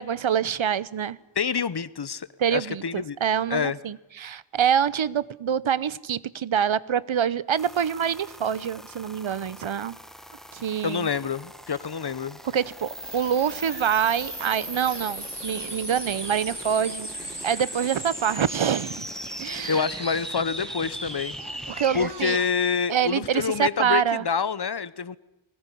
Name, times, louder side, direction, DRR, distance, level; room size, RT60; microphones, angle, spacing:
voice 1, 0.0-1.2 2.4-10.0 10.5-11.1 12.4-17.1 17.4-19.1 19.4-19.9 21.8-22.4 22.9-24.2, right 8 dB, 75° right, 20 dB, 0.9 m, -26 dB
voice 2, 1.4-3.2 3.5-3.8 10.8-12.4 19.7-21.3 21.9-25.2, left 6 dB, 55° left, 18 dB, 1.0 m, -27 dB
sound 1, 7.6-22.1, equal, ahead, 1.2 m, -38 dB
sound 2, 13.0-22.5, right 4 dB, 60° right, 2.8 m, -44 dB
21.5 x 18.5 x 9.9 m, 0.94 s
wide cardioid pair, 90°, 47 cm